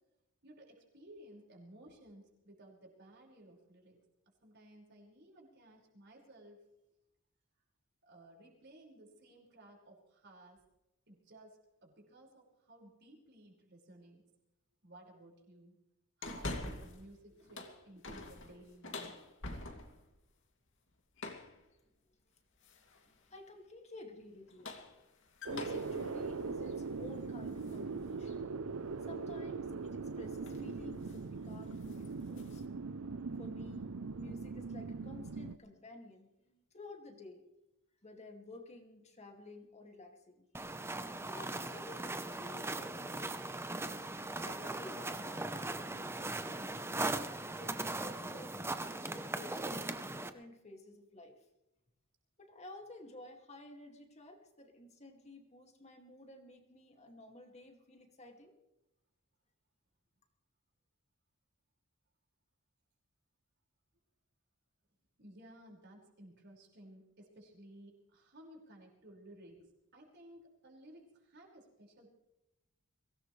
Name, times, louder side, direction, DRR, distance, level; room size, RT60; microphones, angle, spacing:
voice 1, 0.4-4.0 4.4-6.6 8.0-10.6 11.1-14.2 14.8-15.8 16.2-19.2 65.2-72.1, right 1 dB, 50° right, -1 dB, 5.5 m, -57 dB
sound 1, 16.2-17.1 17.4-20.1 21.2-21.6 22.6-23.1 24.3-27.8 28.3-28.4 29.9-30.1 30.4-30.7 31.0-31.3 31.6-32.6, left 2 dB, 60° left, 2.5 m, -46 dB
voice 2, 23.1-24.7 25.4-28.5 29.1-32.6 33.4-33.9 34.2-37.4 38.0-40.4 41.3-43.7 44.4-46.8 47.5-51.4 52.4-58.5, left 2 dB, 30° left, 3 dB, 2.3 m, -52 dB
sound 2, 25.5-35.6, right 4 dB, 75° right, 0.6 m, -41 dB
sound 3, 40.5-50.3, right 2 dB, 10° right, 0.9 m, -39 dB
23.5 x 18.0 x 3.3 m, 0.91 s
head